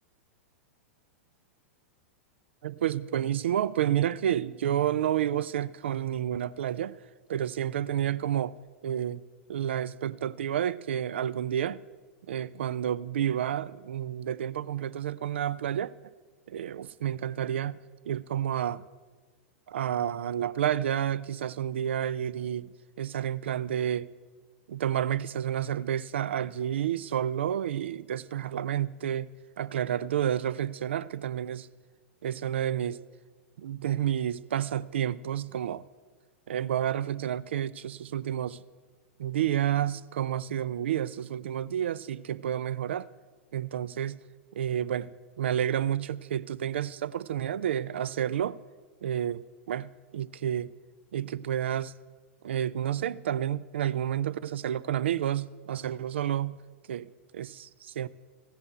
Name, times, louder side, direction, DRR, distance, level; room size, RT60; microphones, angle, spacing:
voice 1, 2.6-7.0 7.3-8.5 8.8-9.2 9.5-11.8 12.3-15.9 16.5-17.8 18.1-18.8 19.7-22.7 23.0-24.1 24.7-29.3 29.6-31.7 32.2-33.0 33.6-35.9 36.5-38.6 39.2-43.1 43.5-44.2 44.5-45.1 45.4-48.6 49.0-50.7 51.1-51.9 52.4-56.6 56.9-57.1 57.3-58.1, right 10 dB, 65° right, 0.4 m, -30 dB
15.0 x 5.4 x 8.0 m
figure-of-eight pair, 95°, 7 cm